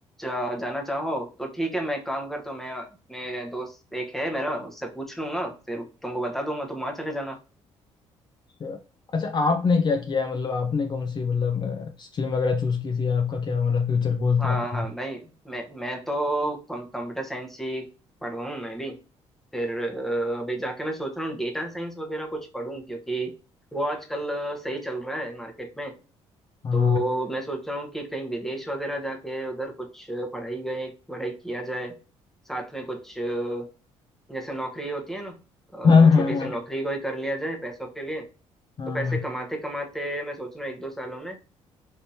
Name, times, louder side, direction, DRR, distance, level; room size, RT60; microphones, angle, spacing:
voice 1, 0.2-7.4 14.4-17.9 18.2-19.0 19.5-23.3 23.7-25.9 26.7-31.9 32.5-33.7 34.3-35.4 35.7-38.3 38.9-41.4, right 1 dB, ahead, 0.9 m, -31 dB
voice 2, 9.1-14.8 26.6-27.0 35.8-36.5 38.8-39.2, left 5 dB, 40° left, 0.5 m, -22 dB
3.5 x 2.8 x 2.7 m
supercardioid pair, 80°, 12 cm